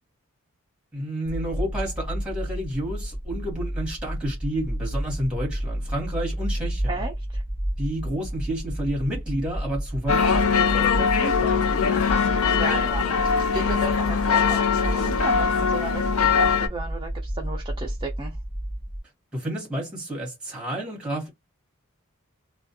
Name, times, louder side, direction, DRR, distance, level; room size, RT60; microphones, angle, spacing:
voice 1, 0.9-7.0 7.8-11.7 19.3-21.3, right 1 dB, 5° right, 1.1 m, -30 dB
sound 1, 1.2-19.0, equal, 30° left, 0.7 m, -31 dB
voice 2, 6.9-7.4 12.4-18.4, right 3 dB, 20° right, 0.4 m, -34 dB
sound 2, 10.1-16.7, left 6 dB, 75° left, 0.5 m, -22 dB
2.4 x 2.2 x 2.7 m
head